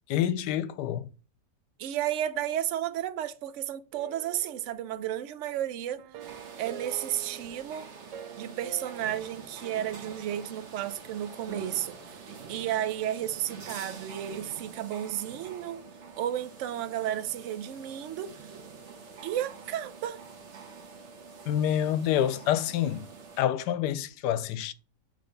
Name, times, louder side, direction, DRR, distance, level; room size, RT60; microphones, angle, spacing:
voice 1, 0.1-1.1 21.5-23.0 23.4-24.7, left 11 dB, 80° left, 1.2 m, -27 dB
voice 2, 1.8-6.0 6.6-7.9 8.4-15.8 16.2-18.4 19.2-20.2, right 11 dB, 70° right, 0.7 m, -33 dB
sound 1, 3.9-5.5 6.0-9.1, right 8 dB, 90° right, 1.3 m, -45 dB
sound 2, 6.2-23.4, right 5 dB, 45° right, 1.2 m, -46 dB
6.6 x 3.3 x 5.1 m
omnidirectional pair, 1.8 m